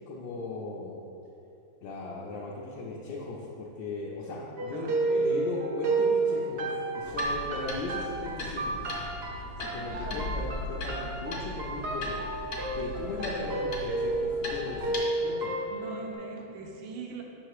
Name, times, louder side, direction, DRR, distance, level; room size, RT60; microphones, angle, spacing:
voice 1, 0.1-0.9 1.8-8.9 9.6-12.2 12.7-15.0 15.2-15.6, left 2 dB, 70° left, -6 dB, 1.3 m, -37 dB
sound 1, 4.6-16.1, right 3 dB, 60° right, 0.6 m, -31 dB
voice 2, 4.7-5.3 9.9-10.3 15.7-17.2, right 4 dB, 75° right, 1 dB, 1.4 m, -42 dB
sound 2, 7.1-15.0, left 2 dB, 55° left, 1.3 m, -38 dB
5.7 x 4.3 x 4.7 m, 2.7 s
omnidirectional pair, 2.1 m